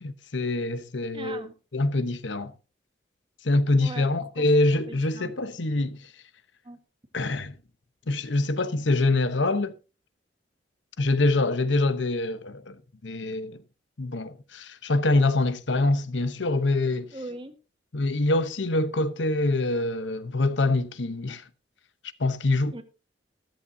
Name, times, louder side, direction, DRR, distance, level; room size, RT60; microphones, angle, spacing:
voice 1, 0.0-1.4 1.7-2.5 3.4-6.1 7.1-7.5 8.1-9.7 11.0-13.6 14.0-17.1 17.9-21.4 22.2-22.7, left 2 dB, 90° left, 1.0 m, -25 dB
voice 2, 1.1-1.5 3.8-4.1 4.4-4.5 4.7-5.3 6.6-6.8 17.1-17.5 22.7-22.8, right 2 dB, 30° right, 1.5 m, -39 dB
14.0 x 14.0 x 2.8 m
head